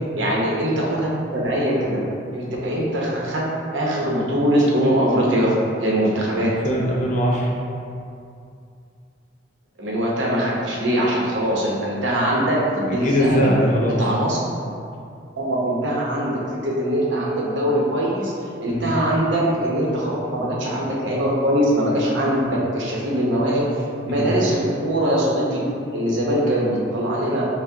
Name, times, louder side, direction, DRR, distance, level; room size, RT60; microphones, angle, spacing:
voice 1, 0.1-2.0 2.3-6.6 9.8-13.5 14.0-14.4 15.4-18.3 18.6-23.7 24.0-27.5, equal, 85° right, -4 dB, 0.8 m, -22 dB
voice 2, 6.6-7.5 12.9-14.0 18.7-18.9 24.1-24.3, equal, 45° left, -3 dB, 0.6 m, -21 dB
5.9 x 2.1 x 2.7 m, 2.5 s
head